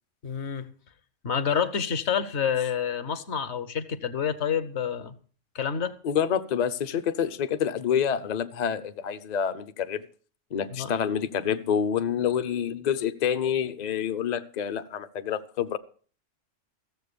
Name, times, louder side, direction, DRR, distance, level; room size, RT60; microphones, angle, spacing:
voice 1, 0.2-0.7 1.2-5.1 5.5-5.9 10.7-10.9, left 7 dB, 60° left, 1.1 m, -28 dB
voice 2, 6.0-10.0 10.5-15.8, left 8 dB, 45° left, 0.6 m, -27 dB
15.0 x 7.3 x 6.7 m
omnidirectional pair, 1.3 m